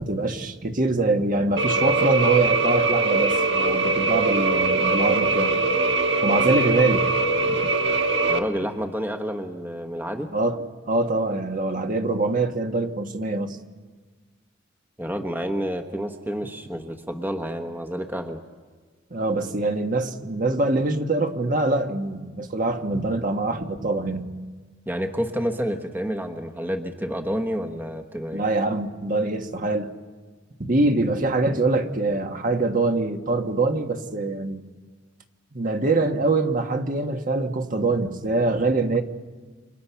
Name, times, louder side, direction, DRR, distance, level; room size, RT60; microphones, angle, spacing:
voice 1, 0.0-5.6 6.2-7.1 7.4-7.7 10.3-10.6 10.9-13.6 19.1-24.3 28.3-29.9 30.6-34.7 35.5-39.0, right 2 dB, 45° right, 5 dB, 1.5 m, -24 dB
sound 1, 1.6-8.4, right 3 dB, 65° right, 1.5 m, -22 dB
voice 2, 8.3-10.3 15.0-18.4 24.9-28.4, equal, 10° right, 5 dB, 1.2 m, -29 dB
29.5 x 27.0 x 5.8 m, 1.4 s
head